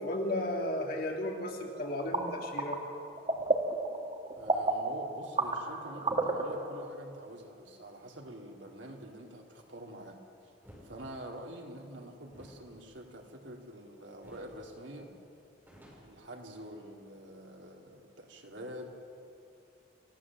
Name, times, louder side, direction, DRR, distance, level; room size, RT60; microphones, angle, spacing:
voice 1, 0.0-2.8, left 1 dB, 50° left, 1 dB, 2.8 m, -34 dB
sound 1, 1.8-6.9, right 2 dB, 35° right, 1.8 m, -33 dB
voice 2, 4.4-10.2 10.8-15.1 16.0-18.9, right 1 dB, 75° right, 1 dB, 3.0 m, -46 dB
sound 2, 10.6-10.9 12.3-13.8 14.2-14.6 14.9-15.0 15.3-16.9, equal, 10° right, 6.5 m, -56 dB
29.0 x 16.0 x 7.5 m, 2.6 s
head